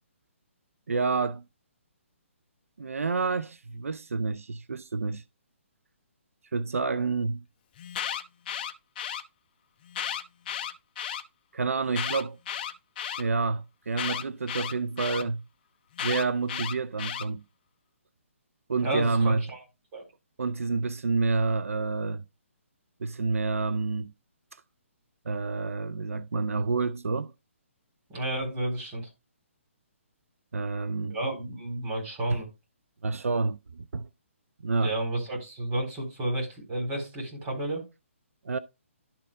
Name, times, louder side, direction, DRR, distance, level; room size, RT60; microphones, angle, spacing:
voice 1, 0.9-1.4 2.8-5.2 6.5-7.4 11.5-12.4 13.2-15.4 16.0-17.4 18.7-19.4 20.4-22.2 23.0-24.1 25.3-27.3 30.5-31.2 32.3-32.4 33.0-34.1 34.6-34.9 38.4-38.6, right 4 dB, 90° right, 0.5 m, -28 dB
Alarm, 7.8-9.2 9.9-11.2 11.9-13.2 14.0-15.2 16.0-17.2, left 9 dB, 40° left, 0.7 m, -33 dB
voice 2, 18.8-19.6 19.9-20.0 28.1-29.1 31.1-32.5 34.8-37.8, right 1 dB, 25° right, 4.0 m, -31 dB
11.5 x 4.4 x 3.6 m
hypercardioid pair, 150°, 7 cm